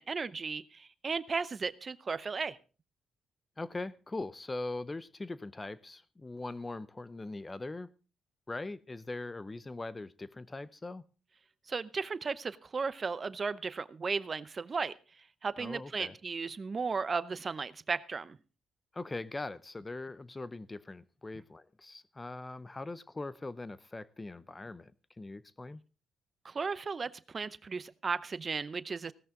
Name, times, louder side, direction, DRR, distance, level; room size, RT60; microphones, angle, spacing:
voice 1, 0.0-2.6 11.7-14.9 15.4-18.4 26.4-29.1, right 5 dB, 35° right, 0.7 m, -35 dB
voice 2, 3.6-7.9 8.5-11.1 15.6-16.1 18.9-24.9 25.2-25.8, left 2 dB, 20° left, 0.7 m, -41 dB
17.0 x 13.0 x 3.7 m
cardioid pair, 90°, 0 cm